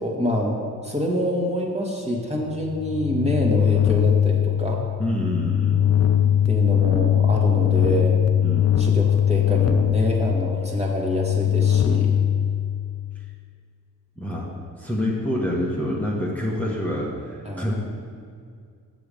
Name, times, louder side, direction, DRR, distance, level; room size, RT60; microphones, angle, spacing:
voice 1, 0.0-4.8 6.5-8.2 8.8-12.1 17.4-17.7, equal, 15° right, -2 dB, 1.9 m, -26 dB
sound 1, 2.5-13.2, left 9 dB, 40° left, 0.6 m, -21 dB
voice 2, 5.0-5.8 8.4-8.8 14.2-14.5 14.8-17.7, left 1 dB, 5° left, -5 dB, 1.4 m, -27 dB
6.8 x 5.0 x 6.8 m, 2.1 s
supercardioid pair, 50°, 41 cm